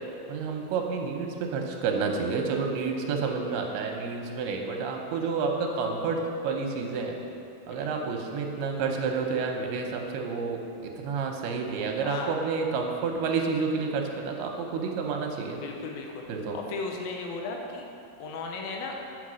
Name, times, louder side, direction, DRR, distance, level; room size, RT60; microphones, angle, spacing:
voice 1, 0.3-6.2 6.4-7.2 7.7-15.6 16.3-16.6, right 5 dB, 85° right, 2 dB, 2.8 m, -29 dB
voice 2, 12.0-12.4 15.6-16.3 16.5-17.8 18.2-18.9, left 4 dB, 75° left, 1 dB, 2.5 m, -35 dB
8.4 x 5.8 x 6.2 m, 2.7 s
omnidirectional pair, 4.5 m